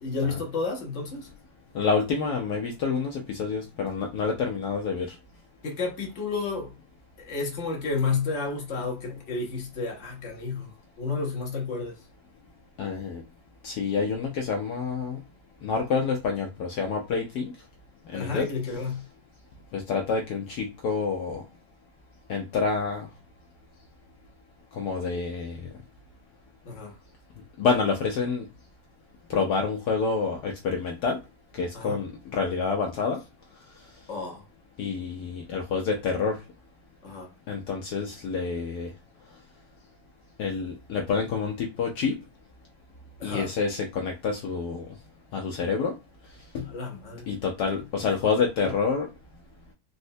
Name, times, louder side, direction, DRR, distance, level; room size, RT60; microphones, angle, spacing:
voice 1, 0.0-1.3 5.6-6.7 7.2-10.7 11.0-12.0 18.1-19.0 26.7-26.9 31.7-32.0 34.1-34.4 37.0-37.3 43.2-43.5 46.7-47.2, left 4 dB, 50° left, 0.9 m, -31 dB
voice 2, 1.7-5.1 12.8-13.2 13.6-15.2 15.6-17.5 18.1-18.5 19.7-21.4 22.3-23.1 24.8-25.7 27.6-28.4 29.3-31.2 31.5-33.2 34.8-36.4 37.5-38.9 40.4-42.2 43.2-44.9 45.3-45.9 46.5-46.7 47.3-49.1, left 5 dB, 85° left, 0.9 m, -28 dB
4.1 x 2.0 x 2.6 m
omnidirectional pair, 2.3 m